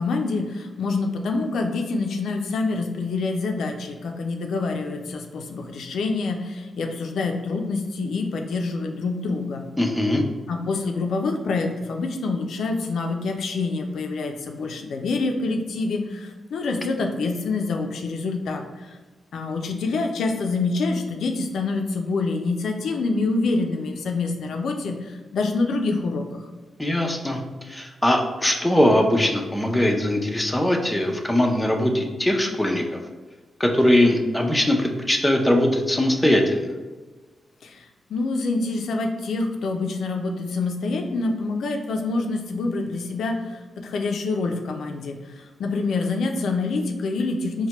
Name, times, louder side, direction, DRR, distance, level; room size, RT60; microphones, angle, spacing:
voice 1, 0.0-9.6 10.5-19.0 19.3-26.5 37.6-47.7, left 3 dB, 80° left, 3 dB, 0.4 m, -26 dB
voice 2, 9.8-10.2 26.8-33.0 33.6-36.7, left 1 dB, 10° left, 1 dB, 0.5 m, -21 dB
4.2 x 2.1 x 2.9 m, 1.3 s
cardioid pair, 80°, 0 cm